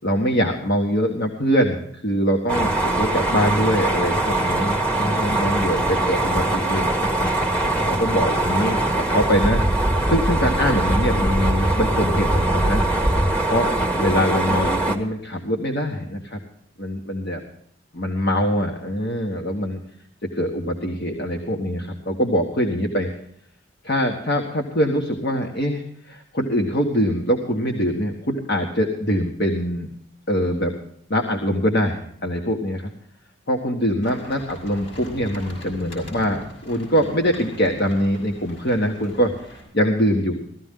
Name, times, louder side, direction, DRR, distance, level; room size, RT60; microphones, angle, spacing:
voice 1, 0.0-7.3 7.8-9.6 10.1-12.8 13.5-16.4 16.8-17.4 17.9-19.8 20.3-23.1 23.8-29.9 30.3-30.8 31.1-32.9 33.5-40.4, equal, 55° left, 2 dB, 1.7 m, -23 dB
sound 1, 2.5-15.0, right 2 dB, 5° left, 1.7 m, -22 dB
sound 2, 34.0-39.6, equal, 75° left, 6.8 m, -40 dB
17.0 x 14.5 x 3.8 m, 0.67 s
head